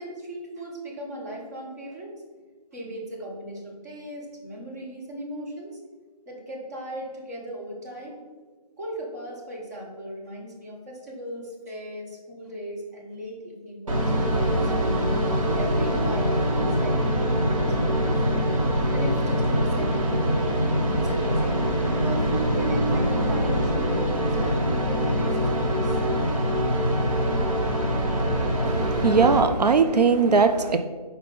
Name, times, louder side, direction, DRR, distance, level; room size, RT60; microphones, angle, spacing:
voice 1, 0.0-2.2 2.7-5.8 6.3-8.2 8.8-14.7 15.5-18.1 18.8-20.1 20.9-21.7 22.0-26.0, equal, 25° right, -2 dB, 1.1 m, -37 dB
sound 1, 13.9-29.4, equal, 55° right, 1.3 m, -24 dB
voice 2, 28.6-30.8, right 5 dB, 85° right, 8 dB, 0.5 m, -20 dB
4.8 x 4.0 x 5.5 m, 1.4 s
figure-of-eight pair, 160°, 20 cm